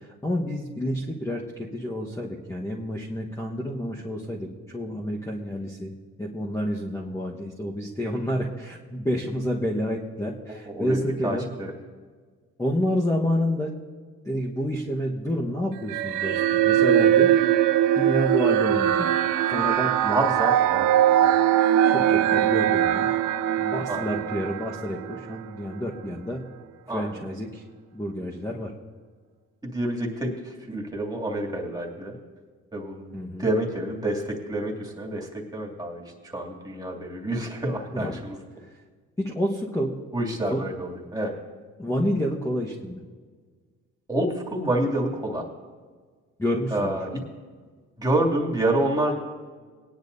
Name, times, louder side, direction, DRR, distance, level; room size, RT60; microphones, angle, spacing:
voice 1, 0.2-5.9 6.2-11.5 12.6-13.7 14.2-17.3 17.9-19.1 19.5-20.2 21.8-23.1 23.6-26.4 26.9-27.6 27.9-28.7 33.1-33.4 37.9-38.1 39.2-39.9 40.5-40.6 41.8-43.0 46.4-47.0, equal, 10° left, -3 dB, 1.3 m, -29 dB
voice 2, 10.7-11.7 20.1-20.9 21.2-21.4 23.9-24.1 26.9-27.3 29.6-32.1 32.7-33.1 33.4-38.4 40.1-41.3 44.1-45.4 46.7-47.2 48.0-49.1, right 1 dB, 15° right, -2 dB, 2.6 m, -28 dB
sound 1, 15.9-25.4, right 11 dB, 90° right, 0.6 m, -21 dB
20.0 x 10.5 x 2.7 m, 1.5 s
cardioid pair, 90°, 30 cm